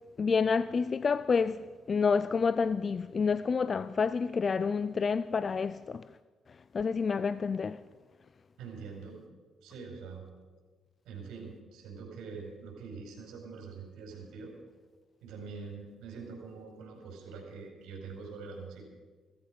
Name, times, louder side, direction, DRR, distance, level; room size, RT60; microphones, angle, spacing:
voice 1, 0.2-6.1 6.5-7.8, left 5 dB, 40° left, 0.4 m, -29 dB
voice 2, 8.6-9.2 9.6-10.2 11.0-14.5 15.2-18.8, right 5 dB, 85° right, 5.0 m, -44 dB
16.5 x 14.5 x 5.3 m
cardioid pair, 90°, 0 cm